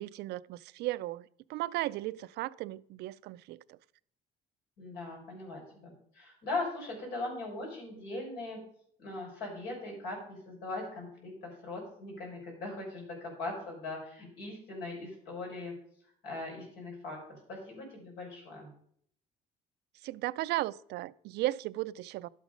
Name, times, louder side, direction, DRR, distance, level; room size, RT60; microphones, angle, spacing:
voice 1, 0.0-3.8 20.0-22.3, right 17 dB, 80° right, 0.4 m, -35 dB
voice 2, 4.8-8.6 9.0-15.7 16.2-17.2 17.5-18.7, left 2 dB, 85° left, 6.1 m, -40 dB
11.5 x 8.3 x 5.2 m
cardioid pair, 110°, 17 cm